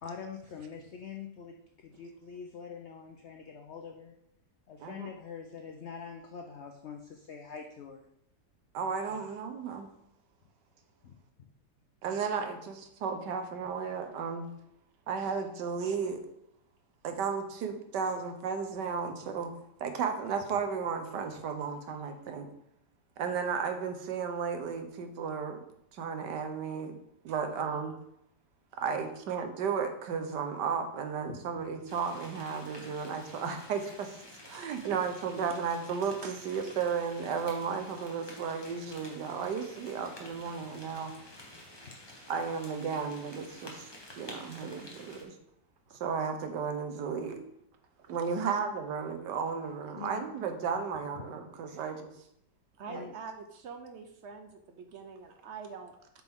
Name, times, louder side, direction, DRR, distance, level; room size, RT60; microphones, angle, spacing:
voice 1, 0.0-4.2 4.7-8.0 11.0-11.5 31.3-31.4 41.8-42.0 49.9-50.2 51.1-51.2 51.7-51.9 52.9-53.1, left 6 dB, 75° left, 4 dB, 0.6 m, -44 dB
voice 2, 8.7-9.9 12.0-14.5 15.1-16.2 17.0-19.5 19.8-22.5 23.2-25.6 25.9-27.0 27.2-27.9 28.8-34.2 34.5-41.1 42.3-43.9 44.2-45.3 46.0-47.4 48.1-52.1 52.9-53.1, right 6 dB, 80° right, 6 dB, 1.5 m, -34 dB
sound 1, 31.9-45.2, left 1 dB, 15° left, 1.0 m, -50 dB
voice 3, 48.0-48.5 52.7-56.1, right 5 dB, 65° right, 6 dB, 0.7 m, -45 dB
7.8 x 4.7 x 3.6 m, 0.76 s
omnidirectional pair, 1.8 m